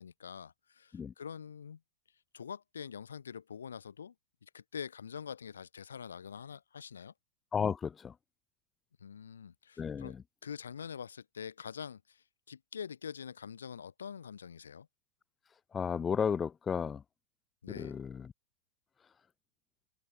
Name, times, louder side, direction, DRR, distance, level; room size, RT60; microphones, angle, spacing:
voice 1, 0.0-1.8 2.3-4.1 4.4-7.1 9.0-10.2 10.4-14.9 17.6-18.0, left 7 dB, 85° left, 2.0 m, -45 dB
voice 2, 7.5-8.1 9.8-10.2 15.7-17.0 17.7-18.3, left 6 dB, 20° left, 0.6 m, -33 dB
hypercardioid pair, 105°, 0 cm